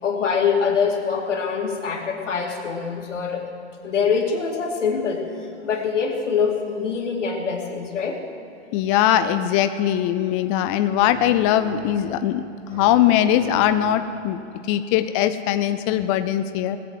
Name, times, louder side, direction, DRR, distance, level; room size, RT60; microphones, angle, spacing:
voice 1, 0.0-3.4 3.8-8.2, left 6 dB, 90° left, 1 dB, 2.5 m, -24 dB
voice 2, 8.7-12.4 12.7-14.4 14.7-16.8, left 11 dB, 30° left, 10 dB, 0.5 m, -20 dB
sound 1, 11.0-12.4 12.7-14.2, right 4 dB, 40° right, 1.4 m, -40 dB
19.0 x 8.2 x 7.4 m, 2.7 s
hypercardioid pair, 135°, 36 cm